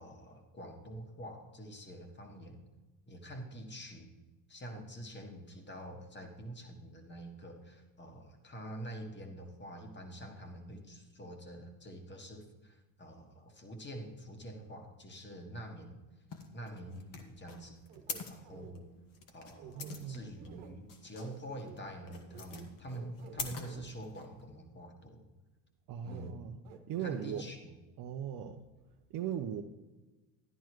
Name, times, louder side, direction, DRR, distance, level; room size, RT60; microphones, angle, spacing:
voice 1, 0.0-2.6 3.1-4.1 4.5-16.0 16.5-17.8 18.3-18.9 19.3-25.2 26.0-26.4 27.0-27.7, right 1 dB, 25° left, 4 dB, 1.7 m, -46 dB
sound 1, 16.3-24.5, left 5 dB, 45° left, 1.5 m, -46 dB
sound 2, 17.9-18.7 19.6-19.9 20.4-20.7 21.2-21.3 21.6-21.8 22.3-23.9 26.1-26.3 26.7-27.4, right 8 dB, 80° right, 1.2 m, -51 dB
voice 2, 19.7-20.3 25.9-26.6 26.9-27.4 28.0-28.6 29.1-29.6, right 9 dB, 50° right, 3 dB, 0.7 m, -38 dB
12.0 x 10.0 x 3.1 m, 1.2 s
supercardioid pair, 85°, 46 cm